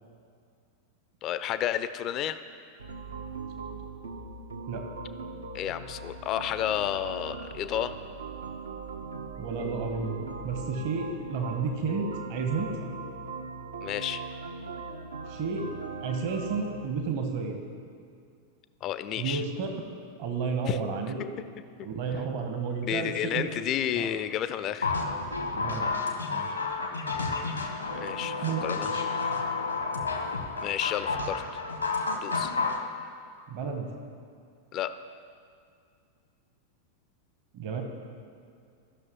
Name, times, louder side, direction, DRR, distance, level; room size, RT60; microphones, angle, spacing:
voice 1, 1.2-2.4 5.5-7.9 13.8-14.2 18.8-19.4 20.7-20.8 22.8-24.9 28.0-28.9 30.6-31.4 32.2-32.5 34.7-34.9, left 10 dB, 35° left, 12 dB, 0.4 m, -31 dB
sound 1, 2.8-16.9, right 3 dB, 75° right, 0.6 m, -40 dB
voice 2, 9.4-10.2 10.4-12.7 15.3-17.6 19.2-19.7 20.2-21.2 21.8-23.5 24.0-24.1 25.5-25.9 26.2-26.5 28.4-28.6 28.9-29.0 33.5-33.9 37.5-37.8, right 5 dB, 50° right, 4 dB, 1.0 m, -32 dB
sound 2, 24.8-32.8, left 4 dB, 80° left, 1.0 m, -31 dB
15.5 x 6.0 x 3.0 m, 2.3 s
figure-of-eight pair, 90°, 0 cm